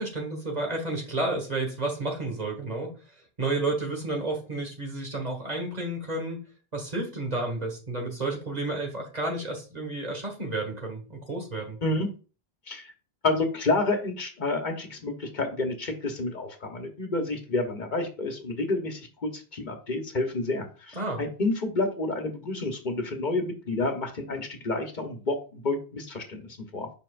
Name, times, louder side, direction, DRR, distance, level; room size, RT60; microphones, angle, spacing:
voice 1, 0.0-2.9 3.4-6.4 6.7-11.8 21.0-21.2, right 2 dB, 40° right, 1 dB, 1.7 m, -31 dB
voice 2, 13.2-26.9, left 2 dB, 50° left, 4 dB, 1.2 m, -29 dB
7.3 x 5.3 x 2.5 m, 0.35 s
omnidirectional pair, 1.0 m